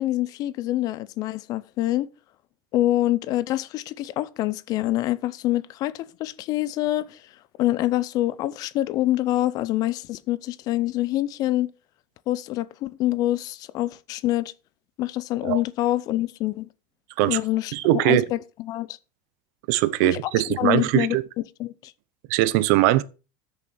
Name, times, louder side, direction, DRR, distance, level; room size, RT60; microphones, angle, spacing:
voice 1, 0.0-2.1 2.7-7.2 7.6-11.7 12.3-14.5 15.0-16.7 17.3-19.0 20.0-21.2 21.6-21.9, left 15 dB, 40° left, 0.6 m, -26 dB
voice 2, 17.7-18.3 19.7-21.2 22.3-23.0, right 16 dB, 60° right, 0.8 m, -21 dB
13.5 x 7.0 x 4.5 m
cardioid pair, 160°, 10 cm